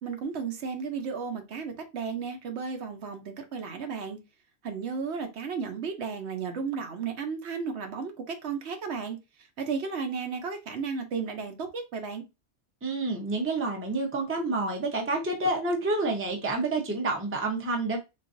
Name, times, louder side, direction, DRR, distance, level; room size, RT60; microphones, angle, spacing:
voice 1, 0.0-4.2 4.6-9.2 9.6-12.2, right 5 dB, 70° right, 0.9 m, -34 dB
voice 2, 12.8-18.0, right 2 dB, 15° right, 0.5 m, -28 dB
3.8 x 2.5 x 2.5 m
omnidirectional pair, 1.2 m